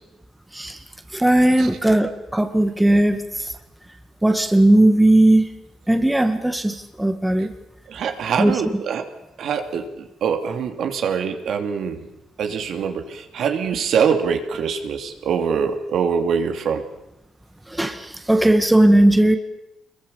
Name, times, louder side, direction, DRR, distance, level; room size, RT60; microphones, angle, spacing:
voice 1, 1.1-3.2 4.2-5.4 5.9-7.5 8.4-8.5 17.7-19.4, right 1 dB, 10° right, 7 dB, 1.9 m, -17 dB
voice 2, 7.9-9.1 9.4-12.1 12.4-16.8, right 6 dB, 70° right, 5 dB, 2.8 m, -24 dB
26.0 x 22.5 x 7.1 m, 0.91 s
cardioid pair, 90°, 0 cm